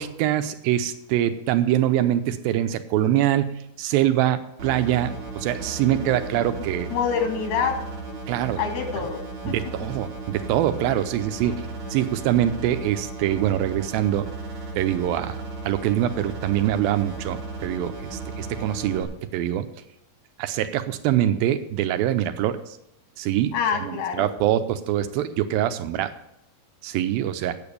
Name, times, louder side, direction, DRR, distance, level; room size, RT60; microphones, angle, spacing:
voice 1, 0.0-6.9 8.3-8.6 9.5-14.3 14.8-19.7 20.4-22.8 23.2-26.1 26.8-27.6, right 12 dB, 90° right, 10 dB, 2.5 m, -24 dB
sound 1, 4.6-19.0, right 3 dB, 35° right, 3.2 m, -35 dB
voice 2, 5.8-6.2 6.9-7.8 8.6-9.2 9.5-9.6 10.9-11.0 11.5-11.6 23.5-24.3, left 7 dB, 85° left, 4 dB, 3.9 m, -26 dB
9.4 x 7.1 x 8.2 m, 0.85 s
omnidirectional pair, 4.2 m